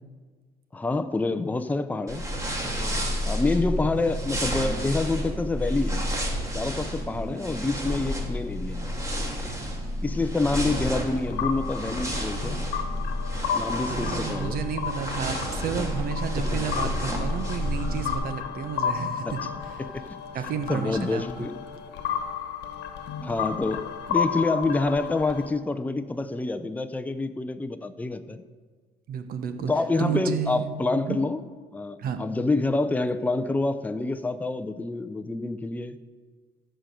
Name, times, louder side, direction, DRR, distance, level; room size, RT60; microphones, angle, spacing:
voice 1, 0.7-2.2 3.2-6.0 6.5-8.9 10.0-12.6 13.5-14.6 15.8-15.9 19.2-19.3 19.8-20.0 20.7-21.6 23.2-28.4 29.7-31.4 31.7-36.0, left 3 dB, 10° left, 9 dB, 0.6 m, -27 dB
sound 1, 2.1-18.1, equal, 20° right, 2.3 m, -30 dB
sound 2, 10.6-25.5, left 7 dB, 80° left, 1.1 m, -33 dB
voice 2, 13.9-19.4 20.3-21.5 29.1-29.7 30.0-30.7 31.1-31.2 32.0-32.2, right 7 dB, 60° right, 8 dB, 1.2 m, -31 dB
13.5 x 5.1 x 7.6 m, 1.5 s
cardioid pair, 110°, 17 cm